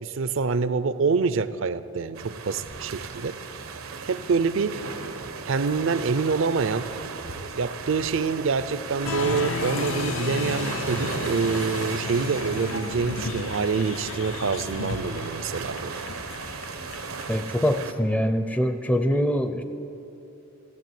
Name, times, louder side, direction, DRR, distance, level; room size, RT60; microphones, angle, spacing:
voice 1, 0.0-3.3 4.1-4.8 5.4-6.9 7.5-16.1, right 4 dB, 70° right, 14 dB, 0.5 m, -26 dB
sound 1, 2.1-17.9, right 4 dB, 90° right, 0.9 m, -35 dB
Applause, 9.0-17.4, left 5 dB, 70° left, 0.5 m, -34 dB
voice 2, 17.3-19.6, equal, 5° left, 8 dB, 0.4 m, -24 dB
14.5 x 7.5 x 9.4 m, 2.9 s
head